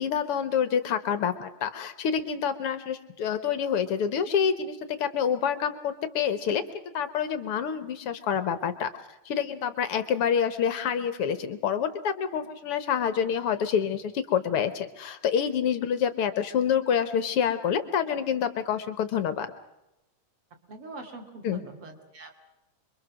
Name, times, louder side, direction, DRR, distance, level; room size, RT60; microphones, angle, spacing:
voice 1, 0.0-6.6 6.9-8.9 9.2-19.5 21.4-21.6, left 8 dB, 65° left, 11 dB, 1.5 m, -27 dB
voice 2, 20.7-22.3, right 2 dB, 45° right, 3 dB, 3.3 m, -43 dB
26.5 x 23.0 x 6.3 m, 0.94 s
omnidirectional pair, 3.8 m